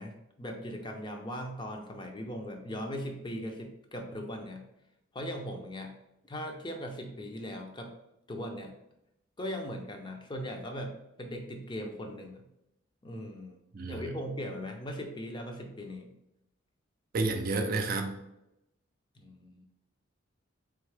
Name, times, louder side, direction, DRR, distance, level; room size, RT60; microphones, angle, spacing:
voice 1, 0.0-4.6 5.1-5.9 6.3-7.9 8.3-8.7 9.4-12.4 13.0-13.6 13.9-16.1 19.2-19.7, equal, 25° left, 3 dB, 0.5 m, -39 dB
voice 2, 13.7-14.1 17.1-18.2, right 3 dB, 45° right, 5 dB, 0.5 m, -30 dB
3.7 x 3.5 x 3.3 m, 0.85 s
head